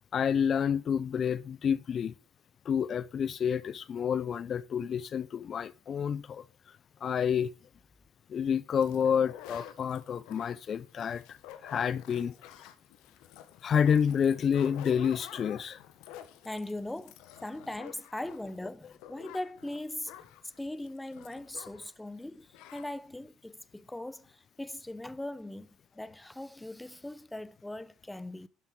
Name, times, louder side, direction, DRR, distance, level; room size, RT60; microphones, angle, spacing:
voice 1, 0.1-2.1 2.7-6.4 7.0-7.5 8.3-11.4 11.6-12.3 13.6-15.8, left 7 dB, 45° left, 0.5 m, -29 dB
sound 1, 8.8-22.0 22.2-22.3 22.5-22.9, left 11 dB, 80° left, 1.3 m, -50 dB
voice 2, 16.4-20.1 20.4-28.5, left 1 dB, 10° left, 0.7 m, -40 dB
12.0 x 7.0 x 4.6 m
supercardioid pair, 80°, 0 cm